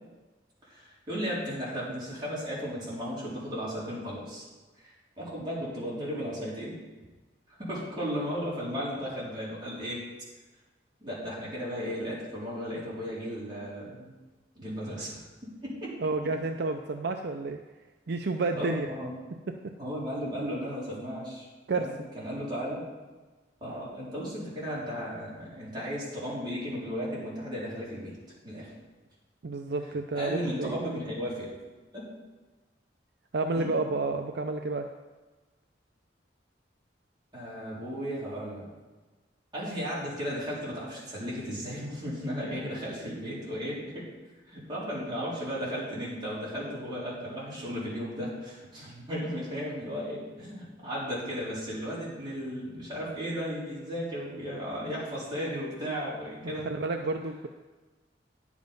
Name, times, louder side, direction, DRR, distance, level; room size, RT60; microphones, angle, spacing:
voice 1, 0.6-4.4 4.8-6.8 7.5-10.0 11.0-14.1 14.5-15.2 15.6-16.3 18.5-19.1 19.8-22.8 23.6-28.1 28.4-28.7 30.1-31.5 31.9-32.1 33.5-33.7 37.3-38.7 39.5-44.1 44.5-56.7, equal, 25° right, -8 dB, 3.9 m, -35 dB
voice 2, 16.0-17.6 18.1-18.9 21.7-21.9 29.4-30.9 33.3-34.9 56.4-57.5, right 3 dB, 60° right, 5 dB, 0.5 m, -30 dB
10.5 x 7.3 x 5.4 m, 1.2 s
head